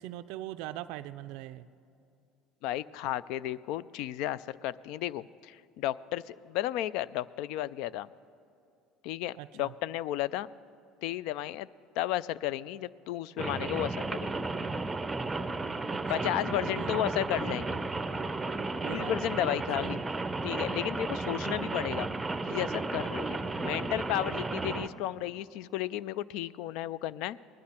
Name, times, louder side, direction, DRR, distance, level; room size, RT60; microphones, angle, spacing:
voice 1, 0.0-1.6 9.4-9.7 15.9-16.3 16.7-17.2 18.8-19.5 19.8-20.0 24.6-24.8, right 14 dB, 75° right, 10 dB, 0.3 m, -42 dB
voice 2, 2.6-8.1 9.0-10.5 11.0-11.7 12.0-14.4 16.1-17.8 18.9-20.0 20.4-22.1 22.5-27.4, left 13 dB, 75° left, 20 dB, 0.3 m, -33 dB
Rain, 13.4-24.9, right 3 dB, 15° right, 0.6 m, -33 dB
19.5 x 11.5 x 4.3 m, 2.6 s
supercardioid pair, 100°, 0 cm